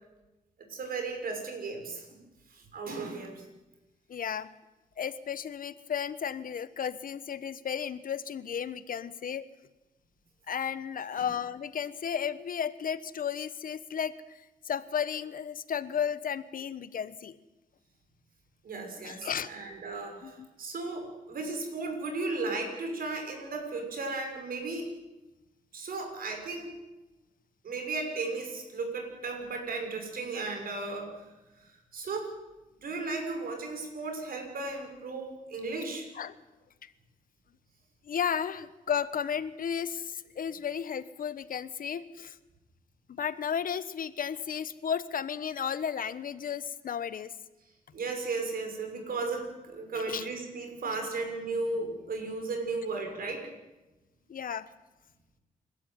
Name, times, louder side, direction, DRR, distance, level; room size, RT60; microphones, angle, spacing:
voice 1, 0.7-2.2 2.5-3.4 11.1-11.3 18.6-24.9 25.7-26.7 27.6-31.2 31.9-32.3 32.8-36.1 47.9-53.5, right 3 dB, 70° right, 4 dB, 6.3 m, -35 dB
voice 2, 4.1-4.5 5.0-9.4 10.5-17.4 19.0-19.5 20.2-20.5 36.1-36.4 36.8-36.9 38.1-42.4 43.1-47.3 50.0-50.3 50.8-50.9 54.3-54.7, left 8 dB, 65° left, 14 dB, 1.3 m, -34 dB
28.0 x 13.0 x 9.3 m, 1.0 s
cardioid pair, 80°, 16 cm